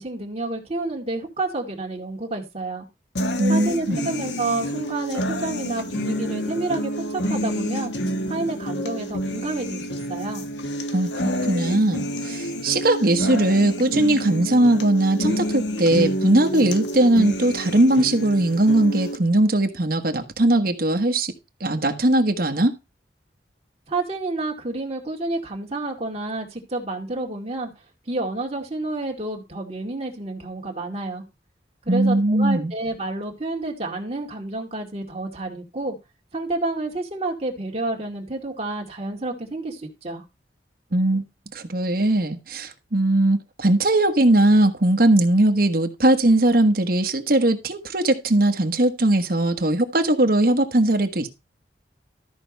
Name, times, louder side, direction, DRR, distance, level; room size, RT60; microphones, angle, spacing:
voice 1, 0.0-2.9 3.5-7.9 8.3-10.4 23.9-27.7 28.1-31.2 31.8-36.0 36.3-40.2, right 2 dB, 35° right, 2.2 m, -29 dB
sound 1, 3.2-19.2, equal, 80° left, 1.2 m, -28 dB
voice 2, 3.4-4.1 10.9-21.3 21.6-22.7 31.9-32.7 40.9-41.2 41.5-51.3, right 1 dB, 55° right, 1.3 m, -19 dB
13.5 x 4.6 x 5.3 m
head